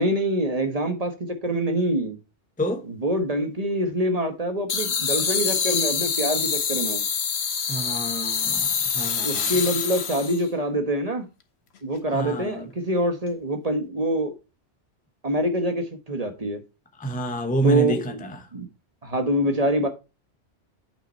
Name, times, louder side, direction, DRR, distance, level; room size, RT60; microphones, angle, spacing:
voice 1, 0.0-2.2 3.0-7.0 9.2-11.2 11.8-14.3 15.2-16.6 17.6-18.2 18.5-18.7 19.0-19.9, right 1 dB, 30° right, 1.3 m, -25 dB
sound 1, 4.7-10.5, left 6 dB, 60° left, 1.2 m, -26 dB
voice 2, 7.7-9.5 12.1-12.7 17.0-18.1, right 2 dB, 10° left, 0.8 m, -28 dB
9.1 x 5.6 x 4.3 m
omnidirectional pair, 1.2 m